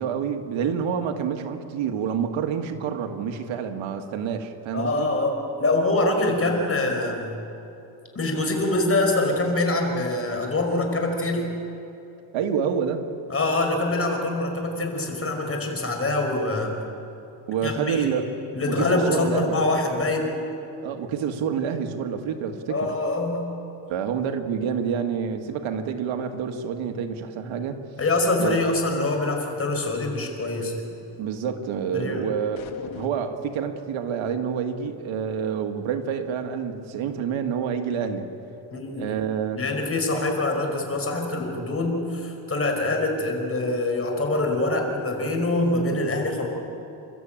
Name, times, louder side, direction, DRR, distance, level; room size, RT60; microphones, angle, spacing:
voice 1, 0.0-5.1 12.3-13.0 17.5-18.3 18.7-19.6 20.8-22.9 23.9-27.8 28.4-28.7 31.2-32.6 33.0-38.3 39.0-39.6 40.1-40.2, right 7 dB, 85° right, 6 dB, 1.8 m, -28 dB
voice 2, 4.7-7.4 8.1-11.5 13.3-16.8 17.6-18.1 18.5-20.3 22.7-23.5 28.0-30.9 31.9-32.3 38.7-39.2 39.5-46.5, left 2 dB, 30° left, 3 dB, 5.1 m, -24 dB
sound 1, 32.6-33.6, left 8 dB, 85° left, 1.8 m, -40 dB
30.0 x 13.0 x 8.9 m, 2.9 s
cardioid pair, 110°, 46 cm